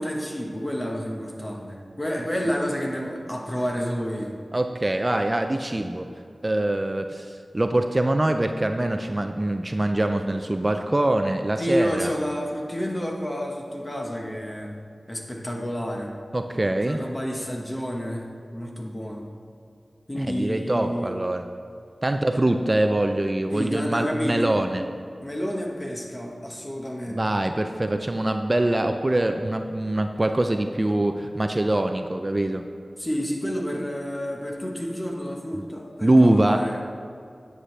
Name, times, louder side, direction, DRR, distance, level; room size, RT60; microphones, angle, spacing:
voice 1, 0.0-4.4 11.6-14.8 15.1-16.2 16.9-19.3 20.1-21.2 23.5-24.5 25.2-27.4 33.0-36.8, equal, 25° left, 0 dB, 1.3 m, -30 dB
voice 2, 4.5-6.1 6.4-12.1 16.3-17.0 20.2-21.4 22.0-24.8 27.1-32.7 35.6-35.7 36.0-36.8, right 1 dB, 30° right, 6 dB, 0.4 m, -23 dB
9.9 x 8.0 x 3.3 m, 2.4 s
wide cardioid pair, 70°, 0 cm